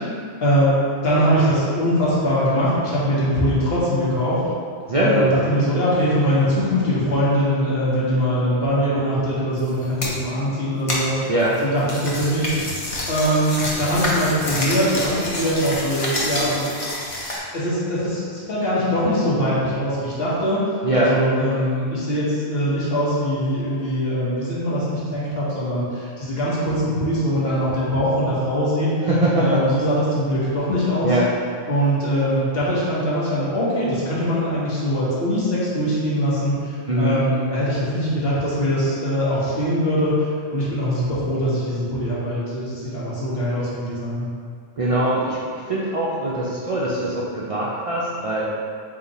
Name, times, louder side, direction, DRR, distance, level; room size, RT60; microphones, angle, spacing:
voice 1, 0.4-0.7 1.0-4.3 5.0-11.2 11.6-12.5 13.1-16.7 17.5-20.6 20.9-28.9 29.4-31.1 31.7-44.3, equal, 65° left, -8 dB, 1.4 m, -22 dB
voice 2, 4.9-5.3 11.3-11.6 20.8-21.2 29.1-29.6 31.0-31.3 36.9-37.2 44.8-45.4 45.7-48.5, right 1 dB, 50° right, -7 dB, 0.4 m, -21 dB
sound 1, 9.6-10.2 10.9-17.4, left 1 dB, 35° left, 0.6 m, -27 dB
3.9 x 2.8 x 4.0 m, 2.2 s
omnidirectional pair, 1.1 m